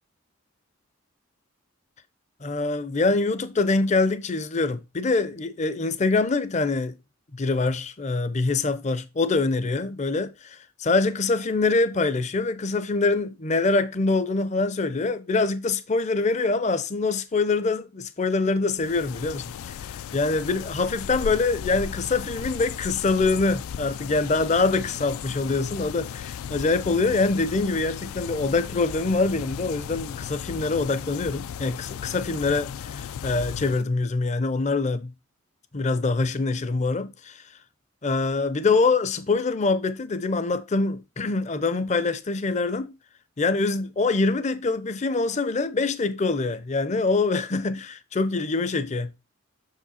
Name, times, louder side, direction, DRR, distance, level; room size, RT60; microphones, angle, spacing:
voice 1, 2.4-7.0 7.3-35.1 35.7-37.4 38.0-43.0 43.4-49.1, left 3 dB, 30° left, 0.5 m, -24 dB
sound 1, 18.7-33.8, left 8 dB, 85° left, 0.3 m, -36 dB
6.2 x 4.9 x 4.2 m
head